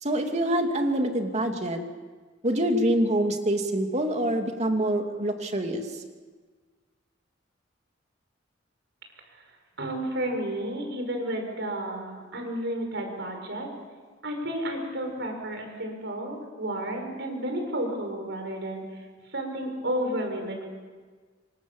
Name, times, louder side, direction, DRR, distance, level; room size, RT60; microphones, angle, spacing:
voice 1, 0.0-1.8 2.4-6.0, right 1 dB, 35° right, 4 dB, 2.6 m, -26 dB
voice 2, 9.8-13.7 14.2-18.8 19.3-20.7, right 1 dB, 60° right, 4 dB, 6.1 m, -31 dB
27.0 x 25.0 x 7.2 m, 1.5 s
head